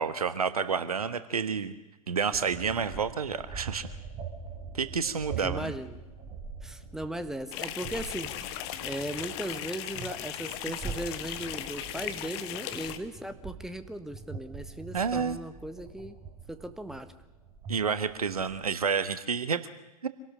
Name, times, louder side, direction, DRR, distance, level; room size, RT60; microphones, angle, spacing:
voice 1, 0.0-1.7 2.1-3.9 4.7-5.7 14.9-15.4 17.7-19.6 20.0-20.1, right 6 dB, 70° right, 13 dB, 1.4 m, -29 dB
sound 1, 2.3-18.7, right 5 dB, 25° right, 4.0 m, -43 dB
voice 2, 5.4-6.0 6.6-8.3 8.8-16.2 16.5-17.1, right 1 dB, ahead, 10 dB, 1.5 m, -37 dB
sound 2, 7.5-13.0, left 12 dB, 45° left, 1.6 m, -37 dB
26.0 x 18.0 x 6.3 m, 1.0 s
figure-of-eight pair, 95°, 19 cm